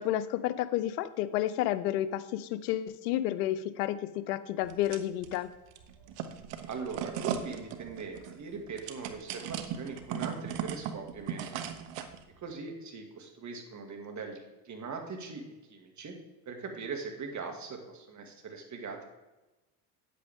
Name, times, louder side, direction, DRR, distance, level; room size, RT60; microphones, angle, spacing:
voice 1, 0.0-5.5, left 13 dB, 80° left, 14 dB, 0.7 m, -31 dB
sound 1, 4.6-5.4 5.7-12.2, right 9 dB, 65° right, 1.1 m, -37 dB
voice 2, 6.7-11.7 12.4-15.4 15.7-16.2 16.5-19.0, right 4 dB, 35° right, 3 dB, 2.3 m, -41 dB
9.3 x 8.4 x 3.6 m, 1.1 s
supercardioid pair, 85°, 46 cm